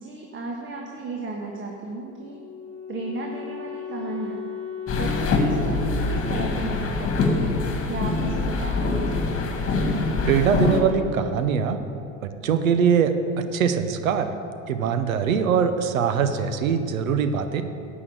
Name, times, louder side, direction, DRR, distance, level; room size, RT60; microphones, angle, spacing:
voice 1, 0.0-2.4 2.9-4.4 4.9-7.5 7.9-9.1, right 2 dB, 30° right, 0 dB, 1.4 m, -34 dB
Wind instrument woodwind instrument, 2.0-7.1, left 8 dB, 5° left, 3.1 m, -38 dB
sound 1, 4.9-10.8, left 3 dB, 35° left, 1.9 m, -24 dB
voice 2, 10.2-11.8 12.2-14.3 14.7-17.6, right 7 dB, 85° right, 9 dB, 1.0 m, -22 dB
11.0 x 6.1 x 7.9 m, 2.6 s
hypercardioid pair, 85°, 40 cm